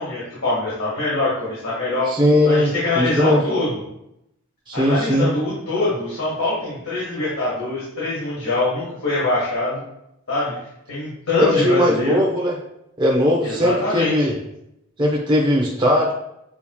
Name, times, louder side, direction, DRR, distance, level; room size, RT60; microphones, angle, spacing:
voice 1, 0.0-2.1 2.4-3.8 4.7-9.8 10.3-10.5 10.9-12.2 13.4-14.3, left 2 dB, 90° left, -9 dB, 1.7 m, -23 dB
voice 2, 2.1-3.4 4.7-5.3 11.4-12.6 13.0-14.4 15.0-16.1, left 1 dB, 20° right, -3 dB, 0.8 m, -19 dB
7.0 x 3.0 x 2.3 m, 0.82 s
head